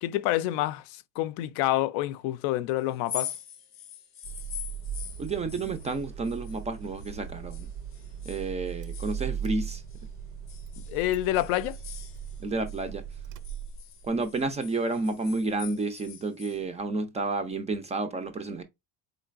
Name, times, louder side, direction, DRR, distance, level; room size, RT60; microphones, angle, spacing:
voice 1, 0.0-3.3 10.9-11.8, left 15 dB, 75° left, 0.5 m, -28 dB
sound 1, 2.9-7.2 7.5-10.0 10.5-12.8 13.1-16.6, left 10 dB, 35° left, 0.6 m, -43 dB
Car / Engine starting, 4.2-14.3, right 8 dB, 80° right, 0.6 m, -38 dB
voice 2, 5.2-7.7 8.2-9.8 12.4-13.0 14.0-18.6, right 3 dB, 20° right, 0.3 m, -31 dB
3.8 x 3.2 x 2.4 m
supercardioid pair, 120°, 39 cm